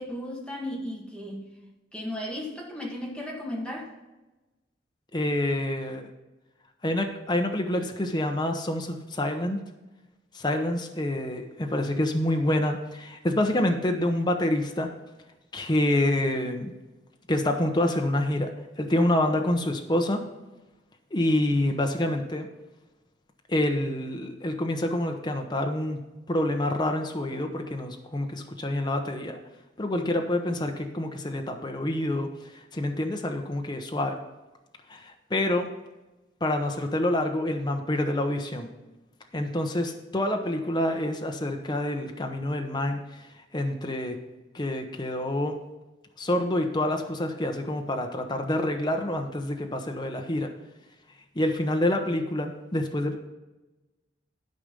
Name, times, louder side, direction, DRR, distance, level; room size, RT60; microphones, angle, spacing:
voice 1, 0.0-1.5 1.9-3.9, left 1 dB, 5° left, -2 dB, 1.8 m, -35 dB
voice 2, 5.1-6.0 6.8-9.6 10.3-14.9 15.5-16.7 17.3-20.2 21.1-22.5 23.5-29.4 29.8-34.2 34.9-35.7 36.4-38.7 39.3-43.2 43.5-44.2 44.5-45.5 46.2-50.5 51.3-53.2, left 1 dB, 25° left, 3 dB, 0.9 m, -27 dB
12.0 x 5.0 x 5.3 m, 1.1 s
head